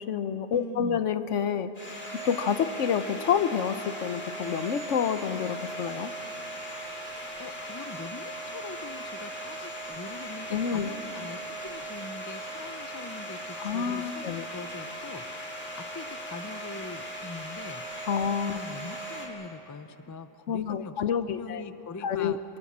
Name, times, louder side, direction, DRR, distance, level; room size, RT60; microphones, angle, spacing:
voice 1, 0.0-1.7 2.2-6.1 10.5-10.9 13.6-14.5 18.1-18.6 20.5-21.6 22.0-22.4, left 7 dB, 70° left, 11 dB, 1.1 m, -28 dB
voice 2, 0.5-1.0 7.1-18.2 18.5-20.9 21.3-22.4, left 3 dB, 30° left, 11 dB, 0.3 m, -43 dB
Domestic sounds home sounds, 1.8-19.3, right 1 dB, 50° left, 3.3 m, -38 dB
25.5 x 18.0 x 7.4 m, 3.0 s
omnidirectional pair, 1.4 m